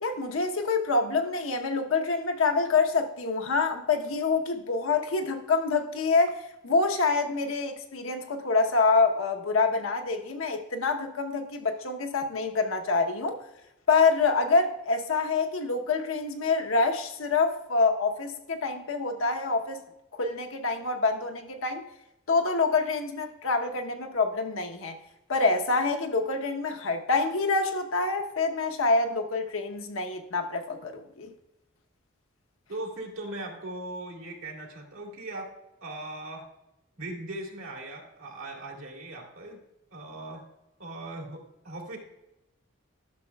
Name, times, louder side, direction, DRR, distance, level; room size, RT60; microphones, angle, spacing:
voice 1, 0.0-13.4 13.9-19.8 20.1-21.8 22.3-25.0 25.3-31.3, left 4 dB, 85° left, 0.9 m, -26 dB
voice 2, 32.7-35.5 35.8-36.4 37.0-39.6 39.9-40.4 40.8-42.0, right 2 dB, 85° right, 2.1 m, -39 dB
12.0 x 6.4 x 2.3 m
head